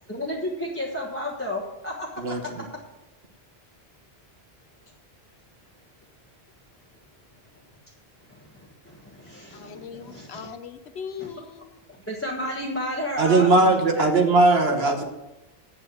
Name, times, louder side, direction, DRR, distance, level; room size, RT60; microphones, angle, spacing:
voice 1, 0.1-2.1 8.3-8.6 8.8-10.3 11.2-11.3 12.1-13.5 14.0-14.1, left 1 dB, 15° left, -3 dB, 1.3 m, -32 dB
voice 2, 9.5-11.7, left 7 dB, 80° left, 10 dB, 1.1 m, -39 dB
voice 3, 13.2-15.0, right 2 dB, 70° right, 4 dB, 1.5 m, -19 dB
8.5 x 7.8 x 7.7 m, 0.97 s
omnidirectional pair, 1.1 m